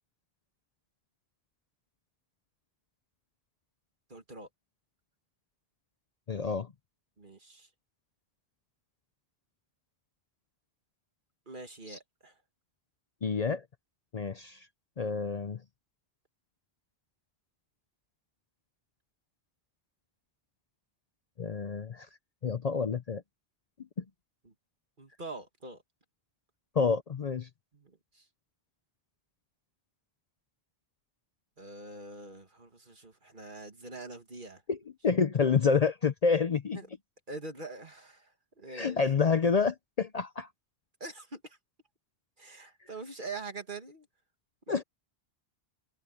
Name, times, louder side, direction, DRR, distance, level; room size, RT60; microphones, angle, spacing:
voice 1, 4.1-4.5 7.2-7.7 11.5-12.4 24.4-24.5 25.0-25.8 27.7-28.3 31.6-34.6 36.7-36.9 37.3-39.0 41.0-41.6 42.4-44.1 44.7-44.8, right 3 dB, 55° right, 2.5 m, -44 dB
voice 2, 6.3-6.7 11.9-12.0 13.2-13.6 14.1-14.7 15.0-15.6 21.4-22.1 22.4-23.2 26.8-27.5 34.7-34.8 35.0-36.8 38.7-40.5 44.7-44.8, left 5 dB, 45° left, 0.7 m, -28 dB
omnidirectional pair, 1.0 m